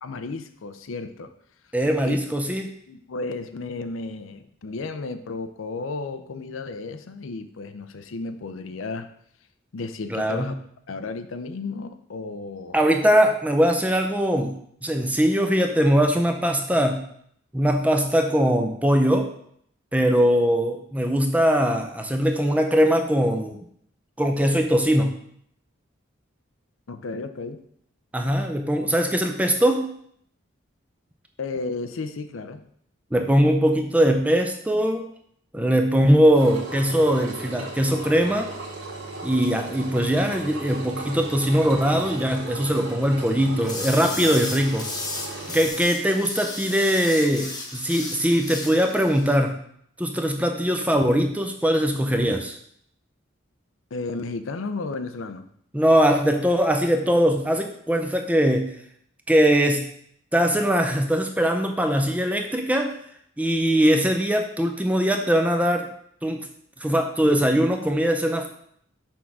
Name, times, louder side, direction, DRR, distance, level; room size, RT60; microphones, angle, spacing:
voice 1, 0.0-1.3 2.0-2.1 2.9-9.1 9.7-10.5 10.9-12.8 26.9-27.6 31.4-32.7 53.9-55.5, left 3 dB, 80° left, 9 dB, 0.5 m, -33 dB
voice 2, 1.7-2.7 10.1-10.5 12.7-14.5 14.8-17.1 17.5-19.3 19.9-23.6 24.2-25.1 28.1-29.9 33.1-35.1 35.5-38.5 39.2-44.9 45.5-49.6 50.0-52.6 55.7-58.7 59.3-59.9 60.3-62.9 63.4-65.9 66.2-66.5 66.8-68.5, equal, 5° right, 5 dB, 0.5 m, -21 dB
Engine, 36.3-45.7, right 3 dB, 85° right, 1.7 m, -36 dB
sound 1, 43.6-49.3, left 3 dB, 20° left, 0.8 m, -34 dB
6.1 x 3.7 x 5.9 m, 0.68 s
head